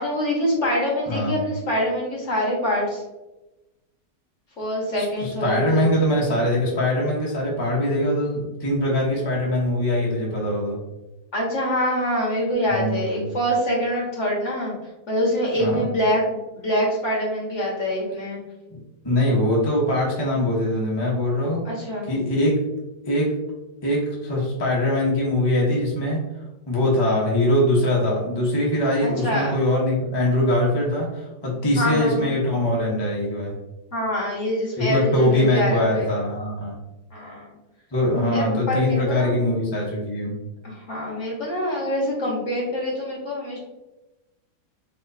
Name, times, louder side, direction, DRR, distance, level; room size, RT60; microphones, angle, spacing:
voice 1, 0.0-3.0 4.6-6.1 11.3-14.7 15.1-18.4 21.6-22.1 29.0-29.5 31.8-32.3 33.9-36.1 37.1-37.5 38.3-39.3 40.6-43.6, equal, 45° left, -3 dB, 1.5 m, -25 dB
voice 2, 1.1-1.4 5.0-10.8 12.7-13.3 15.5-15.8 18.7-21.6 22.1-22.5 23.0-23.3 23.8-26.2 26.7-33.5 34.8-36.8 37.9-40.3, left 1 dB, 20° left, -4 dB, 0.9 m, -22 dB
4.3 x 4.3 x 2.7 m, 1.0 s
omnidirectional pair, 1.9 m